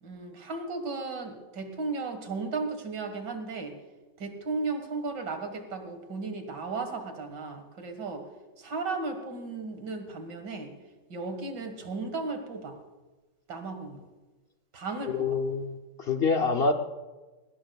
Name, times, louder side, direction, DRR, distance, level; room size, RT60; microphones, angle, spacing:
voice 1, 0.0-3.8 4.2-8.3 8.6-10.7 11.1-12.8 13.5-14.0 14.7-15.4, right 3 dB, 70° right, 6 dB, 2.3 m, -35 dB
voice 2, 15.1-16.7, left 4 dB, 65° left, 5 dB, 0.6 m, -26 dB
19.5 x 18.5 x 2.3 m, 1.2 s
omnidirectional pair, 1.9 m